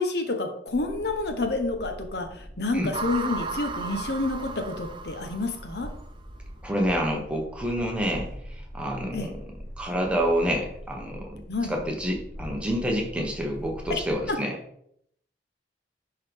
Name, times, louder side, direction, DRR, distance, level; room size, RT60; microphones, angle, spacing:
voice 1, 0.0-5.9 9.1-9.3 11.5-11.8 13.9-14.0 14.3-14.4, left 2 dB, 65° left, 6 dB, 0.9 m, -29 dB
sound 1, 0.7-14.3, equal, 85° left, 1.7 m, -42 dB
sound 2, 2.9-6.2, right 4 dB, 25° right, 0.4 m, -35 dB
voice 2, 6.6-11.4 11.7-14.6, equal, 5° right, 0 dB, 1.1 m, -28 dB
10.5 x 3.9 x 3.5 m, 0.71 s
head